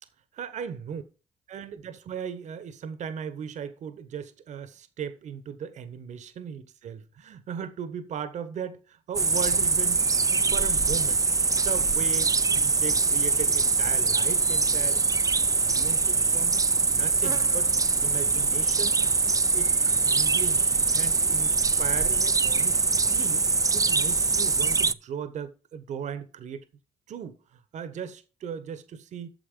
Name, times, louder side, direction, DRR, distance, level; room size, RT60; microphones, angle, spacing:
voice 1, 0.3-1.0 1.5-10.0 10.3-11.2 11.6-15.0 15.6-16.6 16.9-17.7 18.0-19.0 19.5-20.7 20.9-23.5 23.7-26.7 27.1-29.3, right 7 dB, 65° right, 1.3 m, -37 dB
sound 1, 9.1-24.9, right 4 dB, 25° right, 0.6 m, -23 dB
9.3 x 6.7 x 5.1 m
hypercardioid pair, 50°, 13 cm